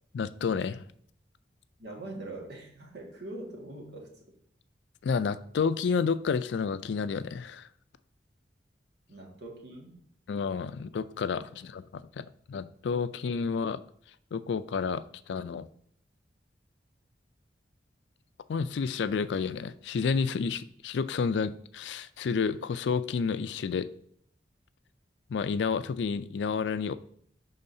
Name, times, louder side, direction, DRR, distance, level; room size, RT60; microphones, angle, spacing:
voice 1, 0.1-0.8 5.0-7.7 10.3-13.8 14.3-15.7 18.5-23.9 25.3-26.9, left 5 dB, 70° left, 14 dB, 0.4 m, -30 dB
voice 2, 1.8-4.2 9.1-10.0, right 2 dB, 65° right, -1 dB, 1.7 m, -43 dB
11.0 x 3.8 x 2.7 m, 0.64 s
head